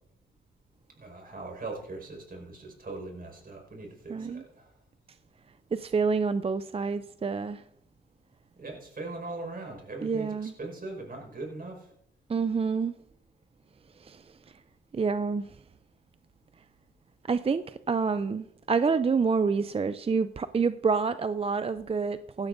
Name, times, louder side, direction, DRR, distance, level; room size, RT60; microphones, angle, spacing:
voice 1, 1.0-4.8 8.6-11.9, right 2 dB, 45° right, 5.3 m, -40 dB
voice 2, 4.1-4.4 5.7-7.6 10.0-10.5 12.3-12.9 14.1-14.2 14.9-15.4 17.3-22.5, right 5 dB, 30° right, 0.5 m, -27 dB
17.0 x 13.0 x 2.7 m
supercardioid pair, 55°, 20 cm